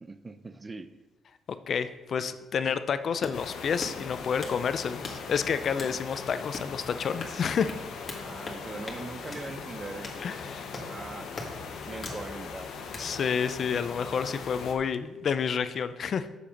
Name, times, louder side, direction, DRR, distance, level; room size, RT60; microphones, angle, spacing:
voice 1, 0.0-0.9 8.1-11.3 11.9-12.8, right 3 dB, 25° right, 12 dB, 0.6 m, -41 dB
voice 2, 1.7-7.7 10.2-10.7 13.0-16.3, left 6 dB, 55° left, 12 dB, 0.5 m, -29 dB
sound 1, 3.0-13.1, left 2 dB, 35° left, 1.8 m, -43 dB
sound 2, 3.3-14.7, left 5 dB, 75° left, 1.1 m, -40 dB
7.4 x 6.9 x 5.2 m, 1.1 s
cardioid pair, 90°, 0 cm